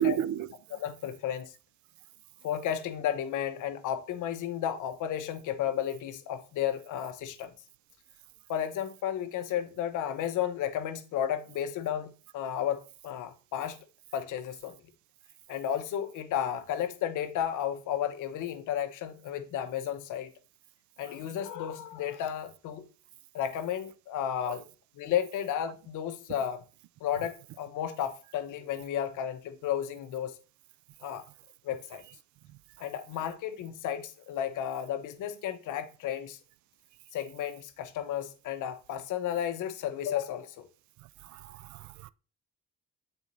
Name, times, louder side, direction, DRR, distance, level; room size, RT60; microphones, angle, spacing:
voice 1, 0.0-0.5 24.4-24.6 41.2-42.1, right 10 dB, 70° right, 0.5 m, -32 dB
voice 2, 0.7-1.5 2.4-7.5 8.5-13.8 14.1-14.8 15.5-20.3 21.0-22.8 23.3-24.6 25.0-26.6 27.0-30.4 31.0-31.2 31.6-32.0 32.8-36.4 37.1-40.7, left 10 dB, 85° left, 1.0 m, -33 dB
8.2 x 4.2 x 4.0 m
cardioid pair, 90°, 30 cm